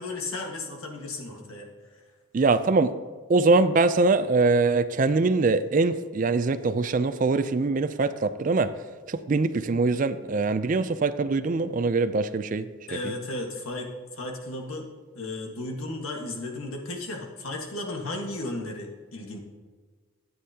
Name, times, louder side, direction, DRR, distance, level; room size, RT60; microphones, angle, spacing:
voice 1, 0.0-2.0 12.9-14.9 15.1-19.4, left 2 dB, 85° left, 1 dB, 1.6 m, -35 dB
voice 2, 2.3-2.9 3.3-8.7 9.1-12.7 13.0-13.1, right 3 dB, 40° right, 12 dB, 0.4 m, -23 dB
13.0 x 9.3 x 2.8 m, 1.5 s
head